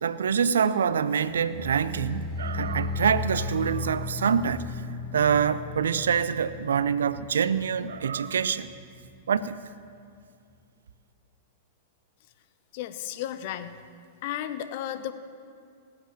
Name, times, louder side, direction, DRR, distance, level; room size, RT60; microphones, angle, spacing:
voice 1, 0.0-4.8 5.1-8.7 9.3-9.6, right 7 dB, 75° right, 0.5 m, -25 dB
sound 1, 1.3-8.4 8.7-9.1 9.5-9.6, left 3 dB, 25° left, 0.7 m, -35 dB
voice 2, 12.7-13.8 14.2-15.1, left 11 dB, 55° left, 0.8 m, -33 dB
18.5 x 7.9 x 7.3 m
hypercardioid pair, 105°, 0 cm